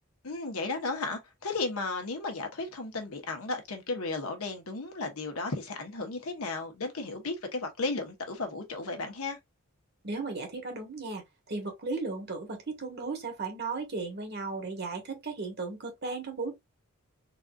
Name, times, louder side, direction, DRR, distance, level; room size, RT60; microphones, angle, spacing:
voice 1, 0.2-9.4, left 3 dB, 75° left, 1.1 m, -34 dB
voice 2, 10.0-16.5, right 3 dB, 50° right, 1.3 m, -35 dB
3.9 x 2.7 x 2.3 m
head